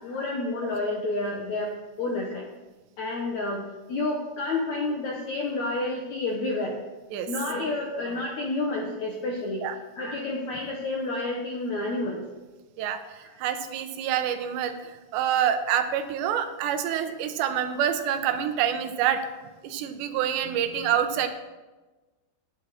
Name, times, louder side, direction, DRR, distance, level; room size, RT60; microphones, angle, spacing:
voice 1, 0.0-1.7 2.0-2.5 3.0-6.8 7.3-9.7 10.0-12.2 13.2-13.4, left 2 dB, 70° left, 0 dB, 1.7 m, -30 dB
voice 2, 12.8-19.2 19.6-21.3, right 9 dB, 80° right, 8 dB, 3.1 m, -27 dB
16.5 x 10.0 x 4.2 m, 1.2 s
omnidirectional pair, 5.0 m